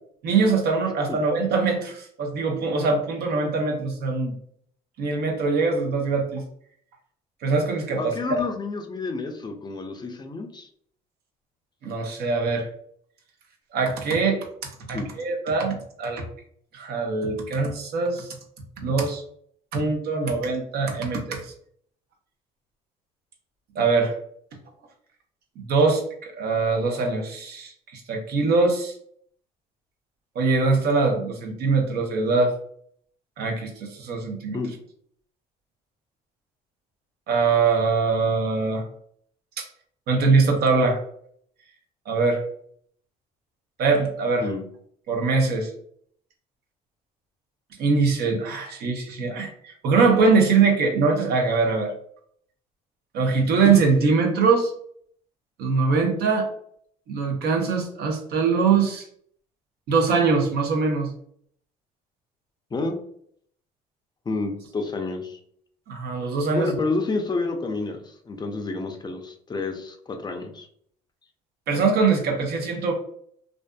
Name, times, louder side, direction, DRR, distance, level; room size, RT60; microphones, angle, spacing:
voice 1, 0.2-4.4 5.0-6.4 7.4-8.1 11.8-12.7 13.7-16.2 16.7-18.3 18.8-19.2 19.7-21.5 23.7-24.1 25.6-28.9 30.4-32.5 33.4-34.6 37.3-38.8 39.6-39.7 40.1-41.0 42.1-42.4 43.8-44.5 45.1-45.7 47.8-51.9 53.1-54.7 55.6-56.5 57.1-59.1 59.9-61.1 65.9-66.7 71.7-72.9, right 4 dB, 65° right, 2 dB, 0.7 m, -22 dB
voice 2, 8.0-10.7 14.9-15.1 34.5-34.8 44.4-44.6 62.7-63.0 64.3-65.4 66.5-70.7, left 3 dB, 25° left, 3 dB, 0.5 m, -29 dB
2.5 x 2.5 x 2.2 m, 0.64 s
supercardioid pair, 75°, 17 cm